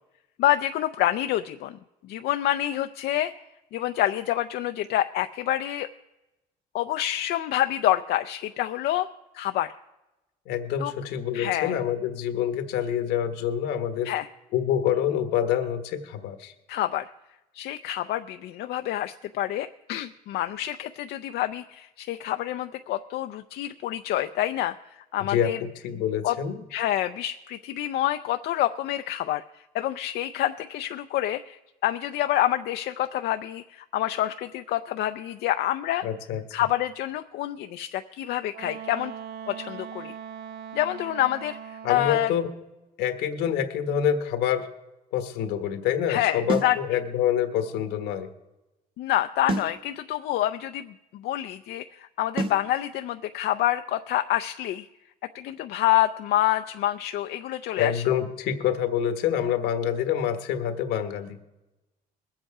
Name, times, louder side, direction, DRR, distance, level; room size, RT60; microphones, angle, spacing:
voice 1, 0.4-1.8 2.0-3.3 3.7-5.9 6.7-9.1 9.3-9.7 10.8-10.9 11.3-11.8 14.0-14.3 16.7-17.1 17.5-25.6 26.2-26.4 26.7-29.4 29.7-36.1 36.5-39.1 39.5-40.1 40.7-42.3 46.1-46.8 49.0-54.9 55.3-58.0, left 13 dB, 70° left, 8 dB, 0.5 m, -27 dB
voice 2, 10.5-14.1 14.5-16.5 25.2-26.6 36.0-36.4 41.8-42.5 43.0-44.7 45.1-48.3 57.8-61.4, left 9 dB, 90° left, 8 dB, 1.4 m, -26 dB
Wind instrument woodwind instrument, 38.5-42.2, right 8 dB, 75° right, 0.7 m, -40 dB
sound 1, 46.5-46.8 49.5-49.8 52.4-52.7, right 3 dB, 30° right, 1.2 m, -28 dB
21.0 x 7.9 x 4.8 m, 0.99 s
cardioid pair, 110°, 17 cm